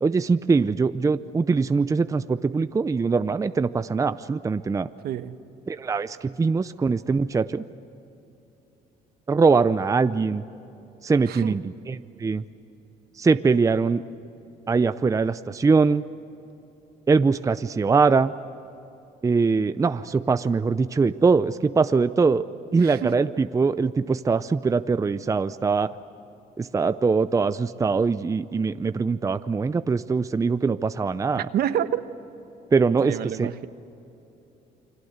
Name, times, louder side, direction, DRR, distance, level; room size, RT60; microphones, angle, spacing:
voice 1, 0.0-4.9 5.7-7.6 9.3-10.4 11.0-12.4 13.2-14.0 14.7-16.0 17.1-18.3 19.2-22.4 22.7-25.9 26.6-31.5 32.7-33.5, right 4 dB, 20° right, 12 dB, 0.6 m, -22 dB
voice 2, 5.0-5.4 11.3-11.6 22.8-23.2 31.3-32.0 33.0-33.7, right 10 dB, 65° right, 10 dB, 1.2 m, -28 dB
29.5 x 23.0 x 8.0 m, 3.0 s
cardioid pair, 110°, 17 cm